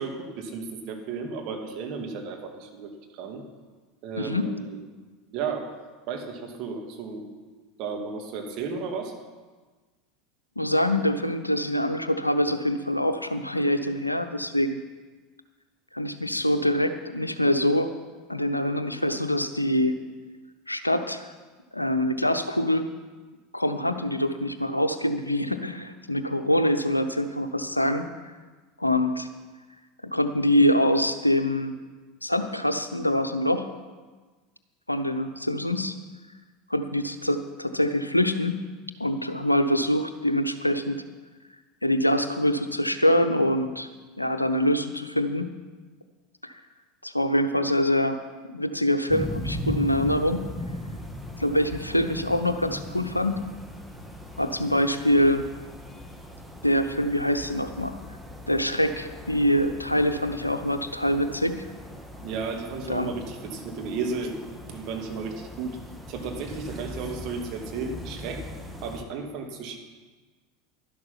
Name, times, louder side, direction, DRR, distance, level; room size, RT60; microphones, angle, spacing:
voice 1, 0.0-3.4 4.0-4.8 5.3-5.7 6.1-7.3 7.8-9.1 62.2-64.4 64.7-65.8 66.1-68.5 68.8-69.8, right 5 dB, 45° right, 3 dB, 2.2 m, -33 dB
voice 2, 4.2-4.5 10.6-14.8 15.9-17.9 18.3-20.0 20.7-21.3 21.7-22.9 23.5-28.1 28.8-29.3 30.0-31.7 32.2-33.7 34.9-36.0 36.7-38.6 39.0-41.0 41.8-43.9 44.2-45.5 46.4-46.5 47.0-48.2 48.5-50.4 51.4-53.4 54.4-55.4 56.6-58.0 58.5-61.7 62.9-63.1, left 1 dB, 85° left, 10 dB, 0.7 m, -24 dB
sound 1, 49.1-69.0, left 1 dB, 5° right, 1.6 m, -39 dB
11.5 x 11.5 x 5.7 m, 1.3 s
figure-of-eight pair, 80°, 0 cm